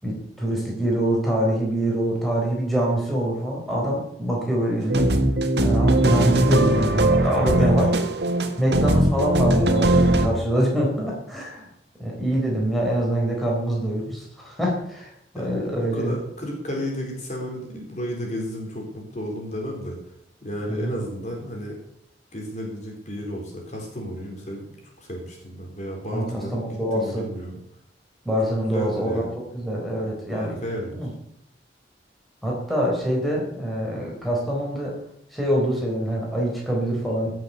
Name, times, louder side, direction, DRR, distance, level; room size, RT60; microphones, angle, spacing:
voice 1, 0.0-5.1 5.6-7.8 8.6-11.7 12.0-16.1 20.7-20.9 26.1-27.2 28.2-29.2 29.5-30.6 30.9-31.1 32.4-34.9 35.3-37.3, right 1 dB, ahead, -3 dB, 4.1 m, -25 dB
sound 1, 4.8-10.3, right 1 dB, 70° right, 1.7 m, -20 dB
voice 2, 7.2-7.9 15.3-20.0 20.4-21.8 22.3-24.6 25.0-27.6 28.6-29.3 30.3-31.0, equal, 40° left, 0 dB, 4.2 m, -33 dB
17.0 x 7.8 x 6.7 m, 0.73 s
head